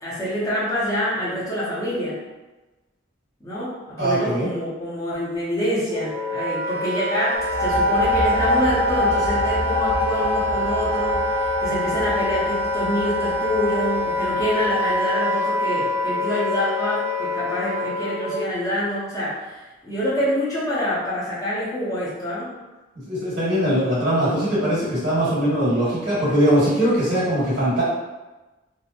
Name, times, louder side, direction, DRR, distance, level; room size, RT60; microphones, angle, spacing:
voice 1, 0.0-2.2 3.4-22.5, equal, 20° left, -10 dB, 0.7 m, -26 dB
voice 2, 4.0-4.5 23.1-27.8, equal, 65° right, -8 dB, 1.3 m, -21 dB
Wind instrument woodwind instrument, 5.9-18.5, left 1 dB, 15° right, 0.3 m, -26 dB
sound 1, 7.3-14.8, left 2 dB, 75° left, 0.7 m, -25 dB
2.8 x 2.1 x 2.4 m, 1.1 s
head